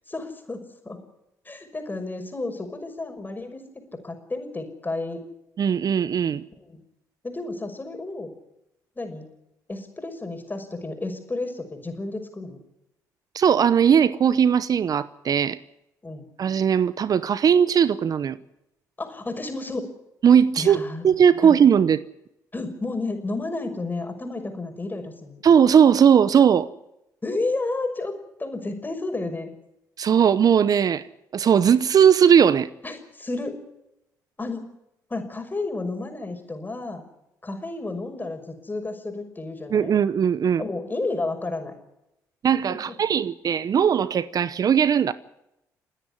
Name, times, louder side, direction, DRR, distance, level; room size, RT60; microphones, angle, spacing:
voice 1, 0.1-1.0 1.4-3.6 3.9-5.2 6.7-6.8 7.2-8.3 9.0-9.3 9.7-12.6 16.0-16.2 19.0-19.8 20.6-21.0 21.4-21.6 22.5-25.4 27.2-29.5 32.8-33.6 34.4-34.7 35.1-37.0 37.4-39.9 40.6-41.7 42.7-42.8, left 2 dB, 25° left, 5.9 m, -31 dB
voice 2, 5.6-6.4 13.3-15.6 16.4-18.4 20.2-22.0 25.4-26.7 30.0-31.0 31.3-32.7 39.7-40.6 42.4-45.1, right 8 dB, 55° right, 0.8 m, -18 dB
29.5 x 10.0 x 9.7 m
supercardioid pair, 55°, 8 cm